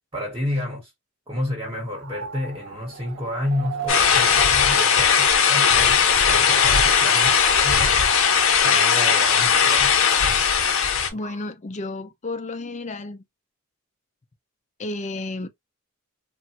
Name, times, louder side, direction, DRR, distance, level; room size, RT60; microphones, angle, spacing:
voice 1, 0.1-0.9 1.3-8.0 8.6-10.0, left 1 dB, 15° right, 1.0 m, -30 dB
sound 1, 1.7-11.4, right 6 dB, 55° right, 0.6 m, -36 dB
sound 2, 3.9-11.1, left 7 dB, 65° left, 0.8 m, -18 dB
voice 2, 11.1-13.2 14.8-15.5, left 2 dB, 35° left, 0.5 m, -32 dB
3.3 x 2.1 x 2.8 m
head